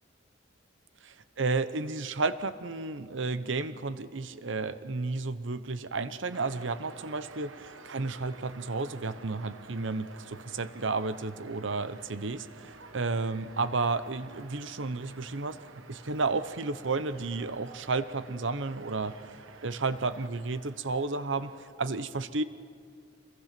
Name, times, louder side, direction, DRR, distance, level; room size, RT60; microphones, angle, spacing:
voice 1, 1.0-15.6 15.9-19.2 19.6-21.5 21.8-22.4, right 3 dB, 70° right, 13 dB, 0.9 m, -32 dB
sound 1, 6.3-21.7, right 4 dB, 90° right, 1.2 m, -51 dB
26.5 x 22.0 x 6.0 m, 2.3 s
head